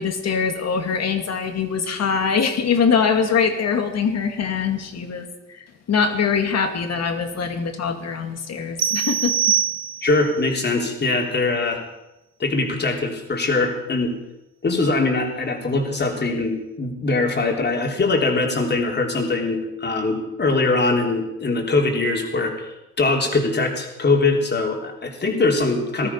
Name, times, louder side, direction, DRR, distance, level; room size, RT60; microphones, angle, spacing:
voice 1, 0.0-9.3 26.0-26.1, left 6 dB, 60° left, 6 dB, 2.4 m, -23 dB
sound 1, 8.8-10.3, right 9 dB, 60° right, 0.8 m, -23 dB
voice 2, 10.0-11.8 12.4-14.1 14.6-26.1, left 3 dB, 35° left, 1 dB, 3.6 m, -22 dB
19.0 x 13.5 x 5.7 m, 0.97 s
cardioid pair, 90°, 30 cm